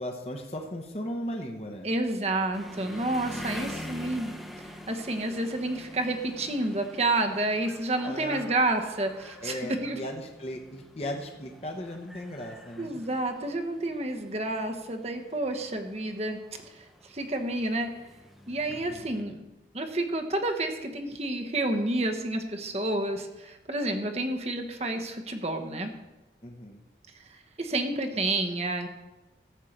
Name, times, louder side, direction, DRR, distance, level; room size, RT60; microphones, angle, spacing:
voice 1, 0.0-1.9 8.0-8.4 9.4-13.0 18.7-19.1 26.4-26.8, left 1 dB, 35° left, 2 dB, 1.0 m, -37 dB
voice 2, 1.8-4.5 4.9-10.0 12.8-16.4 16.6-17.9 18.5-19.4 19.7-25.9 27.6-28.9, right 2 dB, 35° right, 4 dB, 1.1 m, -30 dB
sound 1, 2.5-19.2, left 1 dB, ahead, 0.9 m, -45 dB
13.5 x 4.6 x 7.9 m, 1.1 s
head